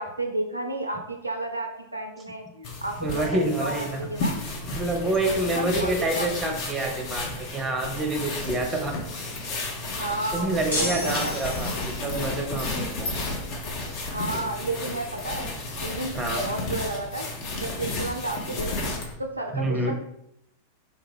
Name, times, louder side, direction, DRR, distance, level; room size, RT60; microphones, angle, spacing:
voice 1, 0.0-4.4 5.3-6.6 10.0-10.7 11.0-11.4 14.1-17.3 17.5-18.8 19.2-19.9, right 2 dB, 85° right, 3 dB, 0.3 m, -32 dB
sound 1, 2.6-19.1, left 2 dB, 45° left, 0.7 m, -32 dB
voice 2, 3.0-4.0 4.7-8.9 10.3-13.1 16.1-16.4 19.5-19.9, right 2 dB, 15° right, 3 dB, 0.7 m, -27 dB
sound 2, 10.7-12.0, left 1 dB, 75° left, 1.3 m, -31 dB
3.4 x 2.3 x 3.4 m, 0.79 s
figure-of-eight pair, 90°, 0 cm